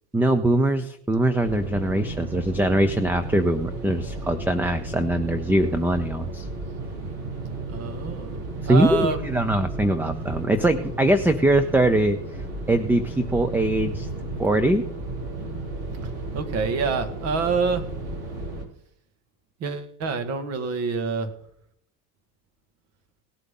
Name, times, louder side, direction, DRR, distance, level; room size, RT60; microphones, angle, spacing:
voice 1, 0.1-6.5 8.7-12.2 12.7-14.1 14.4-14.8, right 1 dB, 5° right, 11 dB, 0.6 m, -22 dB
sound 1, 1.4-18.7, right 2 dB, 65° right, 3.8 m, -33 dB
voice 2, 7.7-9.4 13.8-14.0 16.0-17.9 19.6-21.3, right 4 dB, 50° right, 9 dB, 2.0 m, -27 dB
18.0 x 7.9 x 3.8 m, 0.68 s
supercardioid pair, 130°, 33 cm